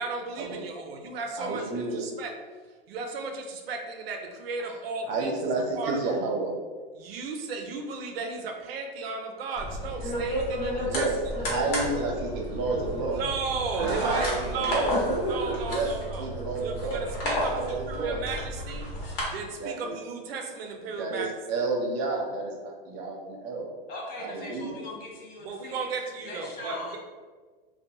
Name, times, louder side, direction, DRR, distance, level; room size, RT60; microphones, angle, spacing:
voice 1, 0.0-2.3 2.9-6.0 6.9-11.1 13.0-15.0 15.2-16.3 16.6-18.9 19.3-21.3 25.4-27.0, right 4 dB, 80° right, 4 dB, 0.5 m, -34 dB
voice 2, 1.4-2.0 5.0-6.5 10.8-11.1 11.4-13.2 13.8-15.0 15.7-15.9 16.2-17.0 17.3-18.2 19.6-19.9 21.0-23.7 24.2-24.7, right 3 dB, 40° right, -1 dB, 0.7 m, -30 dB
sound 1, 9.6-19.2, equal, 60° left, 1.2 m, -31 dB
voice 3, 23.9-25.9 26.2-27.0, left 2 dB, 30° left, -3 dB, 0.7 m, -40 dB
2.6 x 2.2 x 2.7 m, 1.4 s
hypercardioid pair, 120°, 29 cm